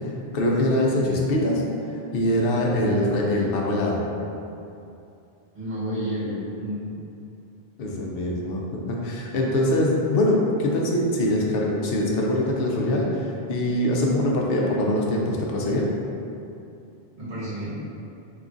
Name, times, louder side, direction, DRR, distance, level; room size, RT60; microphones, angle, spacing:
voice 1, 0.0-1.6 2.1-4.0 7.8-8.6 8.9-15.9, left 1 dB, 65° left, -2 dB, 0.7 m, -23 dB
voice 2, 5.5-6.9 17.2-17.8, equal, 45° right, -12 dB, 1.7 m, -30 dB
3.0 x 2.4 x 3.7 m, 2.7 s
omnidirectional pair, 1.1 m